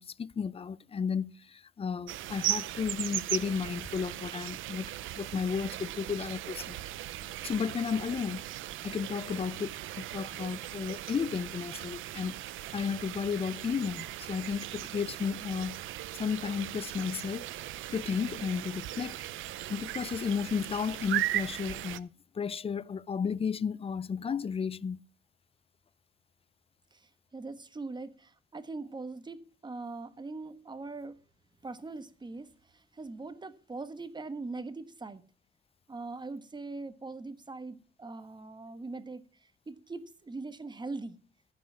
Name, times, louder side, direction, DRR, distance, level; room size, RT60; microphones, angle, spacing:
voice 1, 0.0-6.8 7.4-8.5 8.8-12.4 12.7-15.8 16.1-17.5 17.9-19.2 19.7-22.1 22.3-25.0, left 6 dB, 30° left, 0.5 m, -33 dB
sound 1, 2.1-22.0, right 14 dB, 80° right, 0.6 m, -38 dB
voice 2, 26.9-31.2 31.6-35.2 35.9-41.2, right 3 dB, 20° right, 1.2 m, -41 dB
14.0 x 5.7 x 7.3 m
cardioid pair, 90°, 20 cm